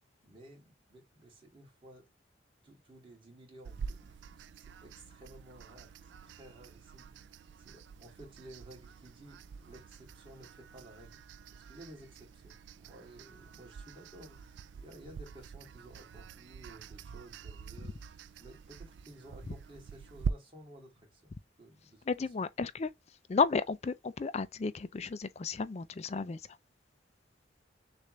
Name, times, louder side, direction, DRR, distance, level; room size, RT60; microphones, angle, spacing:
voice 1, 0.2-2.1 2.6-6.0 6.2-11.2 11.5-21.3 21.6-22.5, right 1 dB, 30° right, 2.3 m, -55 dB
sound 1, 3.6-20.3, right 6 dB, 70° right, 0.3 m, -45 dB
voice 2, 22.1-22.9 23.3-26.4, left 4 dB, 35° left, 0.4 m, -32 dB
6.6 x 2.5 x 3.1 m
head